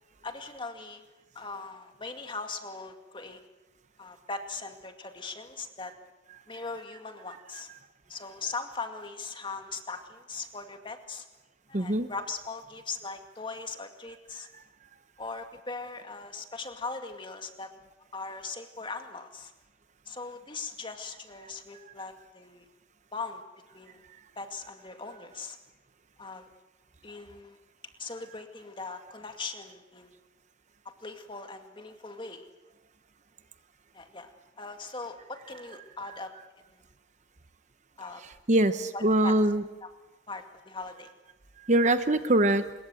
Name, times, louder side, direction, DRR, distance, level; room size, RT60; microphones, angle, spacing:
voice 1, 0.2-1.0 1.3-3.4 4.0-5.9 6.5-7.7 8.1-11.3 11.7-14.5 15.2-17.7 18.1-19.5 20.1-22.7 23.1-23.4 23.7-24.0 24.4-25.6 26.2-26.5 27.0-27.6 28.0-30.1 31.0-32.5 33.9-36.3 36.7-36.8 38.0-38.2 38.9-39.4 39.8-39.9 40.3-41.1, left 4 dB, 25° left, 6 dB, 2.2 m, -40 dB
voice 2, 11.7-12.1 38.5-39.6 41.6-42.6, right 1 dB, 40° right, 10 dB, 0.9 m, -23 dB
26.0 x 21.5 x 7.9 m, 1.1 s
head